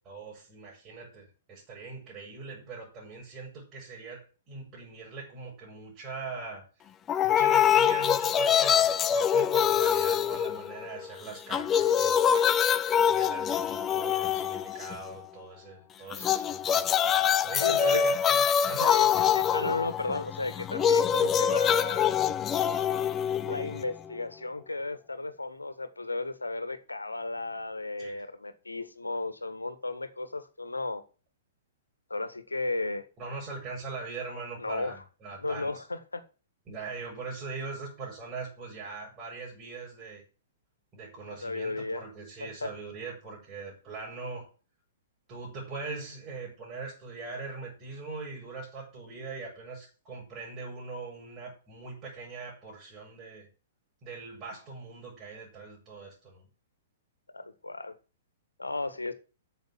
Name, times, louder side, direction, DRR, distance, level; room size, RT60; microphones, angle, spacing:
voice 1, 0.1-6.7 7.2-12.3 13.1-16.9 17.4-19.0 28.0-28.3 33.2-35.8 36.7-40.2 40.9-44.5 45.3-53.5 54.0-56.5, right 4 dB, 25° right, 5.8 m, -41 dB
sound 1, 7.1-11.1 11.4-15.1 16.1-24.1, left 8 dB, 20° left, 0.6 m, -25 dB
voice 2, 11.8-12.5 17.6-18.0 18.8-19.1 19.3-22.1 23.4-31.0 32.1-33.1 34.6-35.0 35.4-36.2 41.4-42.0 42.4-42.7 57.3-58.0 58.6-59.1, left 2 dB, 85° left, 1.6 m, -34 dB
9.2 x 6.9 x 7.4 m
figure-of-eight pair, 110°, 0 cm